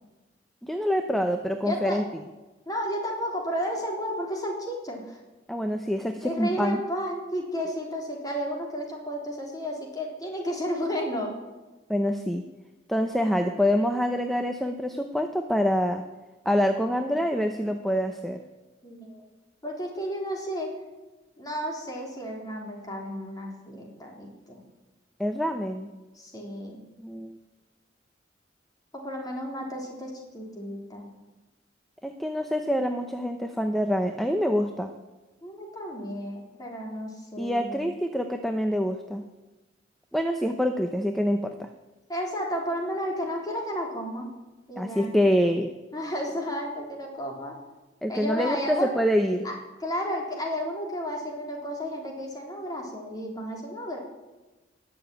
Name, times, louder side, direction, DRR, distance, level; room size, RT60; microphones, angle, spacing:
voice 1, 0.6-2.0 5.5-6.8 11.9-12.4 12.9-16.0 16.4-18.4 25.2-25.9 27.0-27.4 32.0-34.9 37.4-39.2 40.1-41.7 44.8-45.7 48.0-49.5, equal, ahead, 6 dB, 0.7 m, -26 dB
voice 2, 1.6-2.0 2.7-5.2 6.2-11.4 16.8-17.2 18.8-19.3 19.6-20.7 21.4-24.6 26.1-26.8 28.9-31.1 35.4-37.9 42.1-44.3 44.7-45.1 45.9-47.5 48.1-48.9 49.4-49.5 49.8-54.0, equal, 20° left, -1 dB, 3.7 m, -32 dB
19.5 x 7.1 x 9.1 m, 1.1 s
head